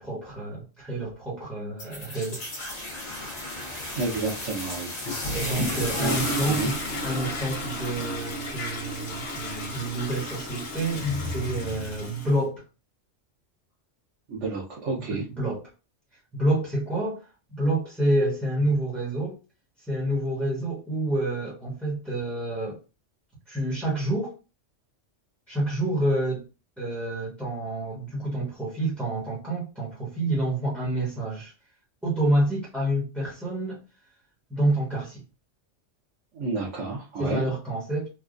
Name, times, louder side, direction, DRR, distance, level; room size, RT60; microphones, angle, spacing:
voice 1, 0.0-2.4 5.3-6.7 7.0-12.6 15.0-15.6 16.3-19.4 19.9-22.8 23.5-24.4 25.5-26.4 26.8-31.5 32.0-33.8 34.5-35.2 37.2-38.1, right 1 dB, ahead, 1.1 m, -28 dB
sound 1, 1.8-8.4, left 1 dB, 40° left, 0.8 m, -34 dB
voice 2, 3.9-4.9 6.0-6.2 6.5-6.8 14.3-15.2 36.3-37.4, right 3 dB, 90° right, 1.2 m, -30 dB
Toilet flush, 5.5-12.4, left 1 dB, 60° left, 1.2 m, -33 dB
3.4 x 2.3 x 2.5 m
omnidirectional pair, 1.2 m